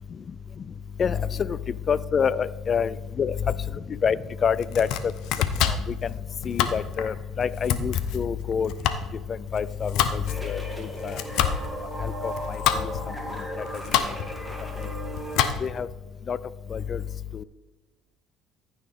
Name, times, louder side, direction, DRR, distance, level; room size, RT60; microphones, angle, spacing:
voice 1, 1.9-3.4 4.0-5.1 5.6-5.8 6.4-8.7 9.5-11.2 12.0-12.9 13.6-13.7 15.6-15.9 16.3-16.4 16.7-17.0 17.3-17.4, left 7 dB, 45° left, 19 dB, 0.4 m, -27 dB
Domestic sounds home sounds, 4.5-15.9, left 9 dB, 75° left, 0.7 m, -28 dB
sound 1, 10.3-15.4, equal, 10° left, 2.4 m, -36 dB
14.5 x 6.3 x 3.5 m, 1.2 s
supercardioid pair, 85°, 0 cm